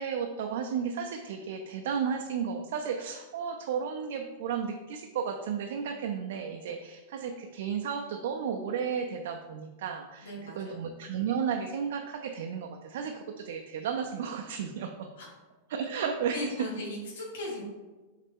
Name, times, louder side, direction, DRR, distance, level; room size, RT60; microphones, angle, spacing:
voice 1, 0.0-15.1 15.7-16.5, right 7 dB, 60° right, 3 dB, 0.3 m, -33 dB
voice 2, 10.2-10.8 15.2-15.3 16.3-17.6, left 1 dB, 70° left, -2 dB, 1.1 m, -37 dB
4.1 x 3.2 x 3.5 m, 1.2 s
supercardioid pair, 170°, 0 cm